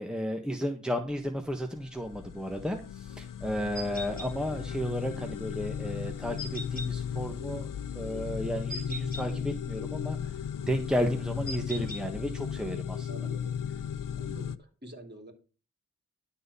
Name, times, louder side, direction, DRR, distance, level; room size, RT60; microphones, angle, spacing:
voice 1, 0.0-7.7 7.9-10.4 10.7-13.1, equal, ahead, 4 dB, 1.3 m, -33 dB
sound 1, 1.2-14.6, left 8 dB, 85° left, 0.5 m, -36 dB
sound 2, 3.8-4.3 6.4-6.9 8.7-9.3 11.5-12.0, equal, 25° left, 3.0 m, -39 dB
voice 2, 13.1-13.5 14.2-15.3, right 1 dB, 30° right, 3 dB, 3.5 m, -47 dB
11.5 x 4.2 x 6.8 m, 0.35 s
wide cardioid pair, 45°, 32 cm